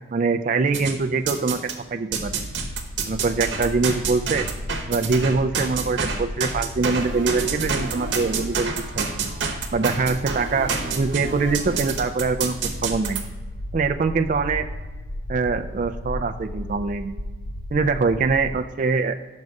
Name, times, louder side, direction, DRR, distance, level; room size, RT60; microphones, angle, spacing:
voice 1, 0.1-2.3 3.1-4.5 4.9-9.1 9.7-12.6 12.8-13.2 13.7-14.7 15.3-17.1 17.7-19.2, right 4 dB, 40° right, 7 dB, 0.3 m, -23 dB
sound 1, 0.7-1.8 2.1-13.2, right 5 dB, 65° right, 1.0 m, -28 dB
sound 2, 2.1-18.6, left 1 dB, 50° left, 0.4 m, -35 dB
6.4 x 5.4 x 4.7 m, 1.3 s
head